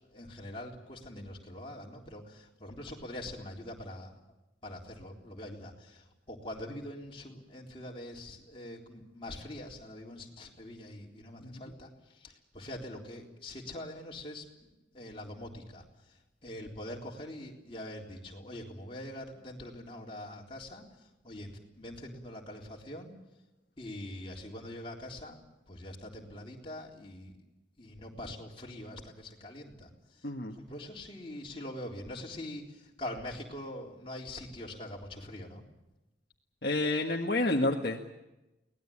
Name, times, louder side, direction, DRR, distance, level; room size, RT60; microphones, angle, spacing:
voice 1, 0.1-4.2 4.6-23.1 23.8-25.4 25.7-27.3 27.8-30.3 30.6-35.6, left 1 dB, 30° left, -1 dB, 3.7 m, -44 dB
voice 2, 30.2-30.5 36.6-38.1, left 2 dB, 55° left, 1 dB, 1.6 m, -29 dB
24.0 x 19.0 x 8.8 m, 0.97 s
head